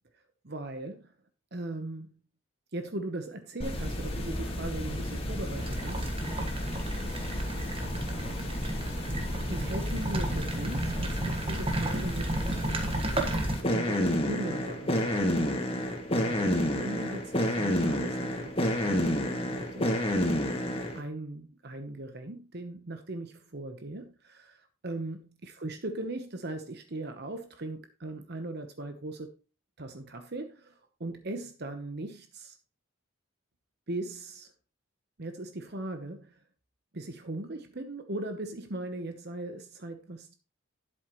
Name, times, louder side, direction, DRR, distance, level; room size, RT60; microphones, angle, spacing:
voice 1, 0.1-1.1 1.5-2.2 2.7-6.1 9.5-12.5 13.7-19.9 20.9-29.3 29.8-32.6 33.9-34.5 35.2-36.4 36.9-40.3, right 2 dB, 55° right, 1.0 m, -39 dB
sound 1, 3.6-21.0, left 1 dB, 30° left, 1.8 m, -31 dB
sound 2, 5.6-13.6, right 1 dB, 30° right, 1.4 m, -34 dB
11.5 x 7.9 x 3.1 m
head